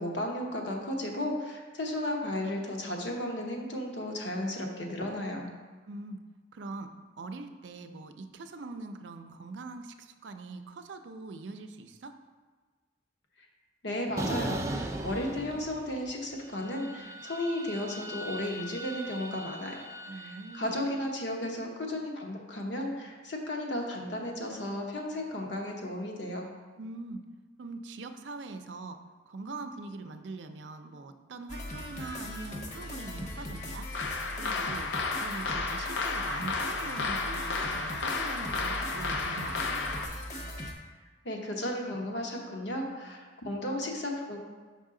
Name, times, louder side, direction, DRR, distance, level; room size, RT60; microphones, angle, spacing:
voice 1, 0.0-5.5 13.8-19.9 20.1-26.5 41.2-43.2 43.4-44.4, left 1 dB, 75° left, 1 dB, 1.0 m, -34 dB
voice 2, 5.9-6.2 6.5-6.9 7.2-12.1 20.1-20.8 26.8-27.2 27.6-29.0 29.3-33.9 34.3-34.9 35.2-39.8, right 3 dB, 80° right, 8 dB, 0.5 m, -42 dB
sound 1, 14.2-16.1 16.4-20.8, right 1 dB, 15° right, 0.4 m, -38 dB
sound 2, 31.5-40.7, left 1 dB, 40° left, 0.9 m, -40 dB
sound 3, 33.9-40.1, left 3 dB, 90° left, 0.6 m, -32 dB
6.4 x 5.4 x 3.7 m, 1.4 s
head